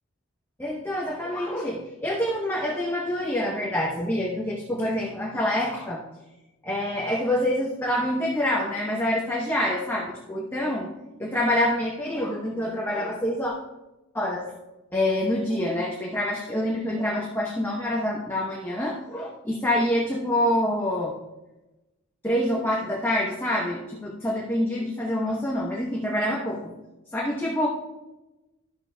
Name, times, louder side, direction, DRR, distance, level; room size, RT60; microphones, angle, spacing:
voice 1, 0.6-6.0 6.6-10.9 11.2-13.5 14.1-14.5 14.9-21.1 22.2-26.7 27.1-27.7, left 1 dB, 10° left, -3 dB, 0.8 m, -26 dB
12.0 x 6.8 x 2.3 m, 1.0 s
head